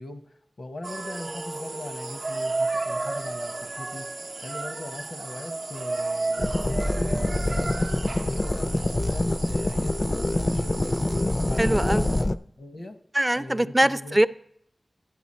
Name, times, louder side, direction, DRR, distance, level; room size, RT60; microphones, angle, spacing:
voice 1, 0.0-7.9 8.2-11.1 11.5-12.2 12.6-13.0 13.3-14.2, left 1 dB, 75° left, 7 dB, 0.9 m, -40 dB
sound 1, 0.8-12.2, right 3 dB, 75° right, 0.5 m, -33 dB
sound 2, 6.4-12.4, left 1 dB, 45° left, 0.4 m, -25 dB
voice 2, 11.6-12.1 13.1-14.3, right 1 dB, 20° right, 14 dB, 0.4 m, -22 dB
11.5 x 8.1 x 4.2 m, 0.69 s
cardioid pair, 40°, 0 cm